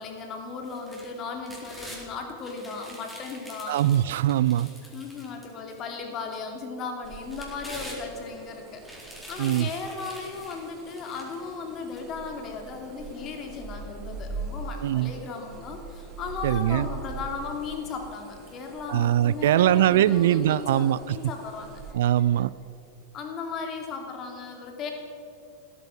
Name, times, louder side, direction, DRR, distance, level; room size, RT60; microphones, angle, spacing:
voice 1, 0.0-3.8 4.9-8.8 9.3-22.2 23.1-24.9, left 5 dB, 30° left, 3 dB, 2.9 m, -36 dB
sound 1, 0.6-2.0 2.4-5.8 6.3-6.4 7.1-8.4 8.8-11.5 12.0-12.1, equal, 5° left, 3.9 m, -45 dB
voice 2, 3.7-4.7 9.4-9.7 14.8-15.1 16.4-16.9 18.9-21.2 21.9-22.5, right 12 dB, 55° right, 18 dB, 0.4 m, -22 dB
sound 2, 7.0-21.9, right 4 dB, 35° right, 1.8 m, -42 dB
16.0 x 13.5 x 6.1 m, 2.7 s
figure-of-eight pair, 90°, 0 cm